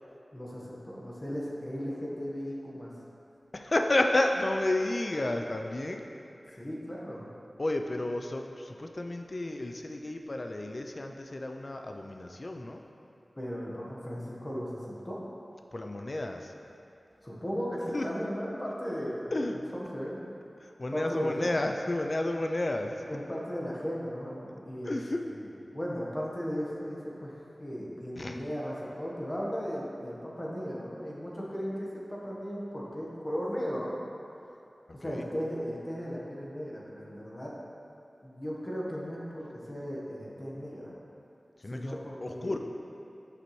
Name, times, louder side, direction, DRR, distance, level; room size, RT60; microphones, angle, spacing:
voice 1, 0.3-2.9 6.5-7.3 13.4-15.2 17.2-20.2 20.9-21.5 23.1-25.0 25.2-25.4 25.7-34.0 34.9-37.5 38.2-41.0 41.6-42.6, equal, 30° left, -5 dB, 1.2 m, -36 dB
voice 2, 3.5-6.0 6.5-6.6 7.6-12.8 15.7-16.5 17.9-18.1 19.3-19.6 20.6-23.0 24.8-25.2 28.2-28.4 35.0-35.3 41.6-42.6, left 1 dB, 50° left, 4 dB, 0.4 m, -31 dB
6.8 x 5.7 x 3.1 m, 2.7 s
wide cardioid pair, 50°, 0 cm